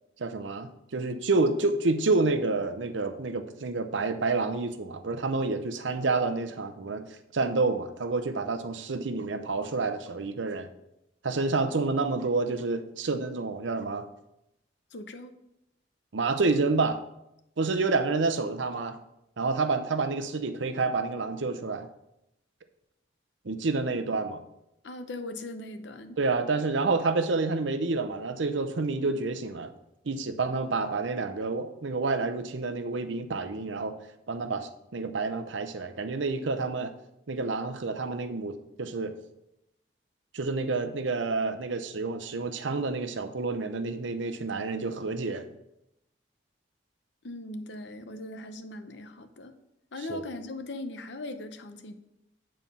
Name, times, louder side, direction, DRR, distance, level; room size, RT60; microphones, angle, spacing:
voice 1, 0.2-10.7 11.2-14.1 16.1-17.0 17.6-19.0 19.4-21.9 23.4-24.4 26.2-29.7 30.1-34.0 34.3-36.9 37.3-39.1 40.3-45.5 50.1-50.2, right 3 dB, 90° right, 10 dB, 0.7 m, -29 dB
voice 2, 14.9-15.3 24.8-26.2 47.2-49.5 49.9-51.9, left 2 dB, 75° left, 9 dB, 0.8 m, -39 dB
9.2 x 4.4 x 5.5 m, 0.85 s
head